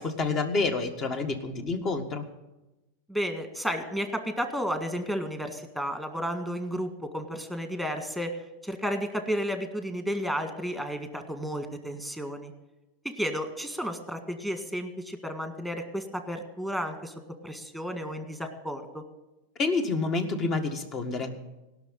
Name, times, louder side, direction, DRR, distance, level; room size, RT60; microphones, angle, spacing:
voice 1, 0.0-2.3 19.6-21.4, left 3 dB, 35° left, 7 dB, 1.7 m, -28 dB
voice 2, 3.1-8.4 8.6-12.5 13.0-17.1 17.4-19.0, equal, 5° left, 6 dB, 1.8 m, -32 dB
17.0 x 6.3 x 9.0 m, 1.0 s
hypercardioid pair, 120°, 0 cm